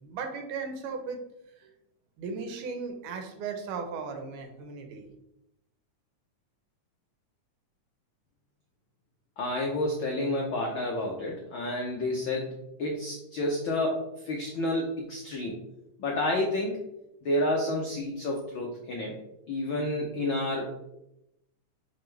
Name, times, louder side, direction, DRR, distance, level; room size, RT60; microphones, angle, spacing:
voice 1, 0.0-1.2 1.6-1.7 2.2-5.1, right 5 dB, 85° right, 5 dB, 2.5 m, -36 dB
voice 2, 9.4-12.5 12.8-15.6 16.0-16.8 17.2-19.1 19.5-20.7, left 1 dB, 85° left, -1 dB, 1.1 m, -30 dB
5.7 x 5.0 x 3.3 m, 0.84 s
omnidirectional pair, 3.5 m